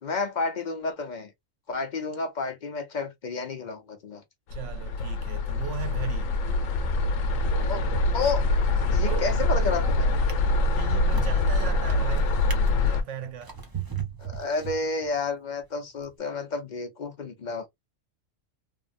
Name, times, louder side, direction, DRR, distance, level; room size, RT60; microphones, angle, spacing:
voice 1, 0.0-1.3 1.7-4.2 7.7-7.8 8.1-8.4 8.9-10.1 14.2-17.7, left 4 dB, 45° left, 0.6 m, -30 dB
sound 1, 4.5-13.0, left 2 dB, 85° left, 1.0 m, -24 dB
voice 2, 4.5-6.3 9.1-9.3 10.7-12.4 12.7-13.6, right 9 dB, 75° right, 0.9 m, -37 dB
Subway metro underground, 5.8-12.5, right 3 dB, 90° right, 1.5 m, -48 dB
Drawer open or close, 9.1-9.5 10.1-15.3 16.0-16.1, right 8 dB, 30° right, 0.4 m, -39 dB
3.5 x 2.0 x 2.4 m
omnidirectional pair, 1.3 m